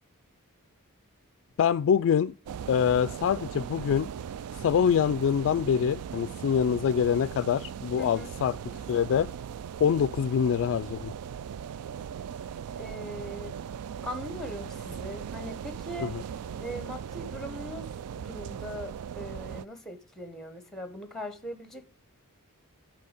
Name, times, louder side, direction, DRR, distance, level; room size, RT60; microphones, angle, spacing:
voice 1, 1.6-2.3 2.7-4.1 4.5-8.5 8.9-9.3 9.8-11.1 16.0-16.2, left 7 dB, 60° left, 0.3 m, -25 dB
sound 1, 2.5-19.7, right 8 dB, 80° right, 0.3 m, -39 dB
voice 2, 12.8-13.5 14.0-16.1 16.6-21.9, equal, ahead, 1.2 m, -40 dB
9.4 x 5.9 x 4.9 m
head